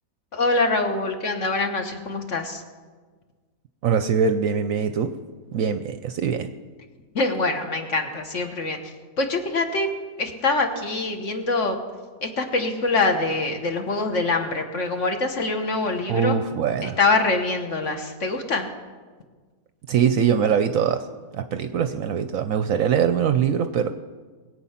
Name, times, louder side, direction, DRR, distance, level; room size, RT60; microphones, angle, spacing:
voice 1, 0.3-2.6 7.1-9.9 10.2-11.8 12.2-16.4 16.8-18.7, left 3 dB, 50° left, 5 dB, 1.5 m, -24 dB
voice 2, 3.8-5.2 5.5-6.5 16.1-17.0 19.9-21.1 21.3-23.9, right 7 dB, 65° right, 9 dB, 0.9 m, -22 dB
21.0 x 8.5 x 5.7 m, 1.5 s
omnidirectional pair, 1.8 m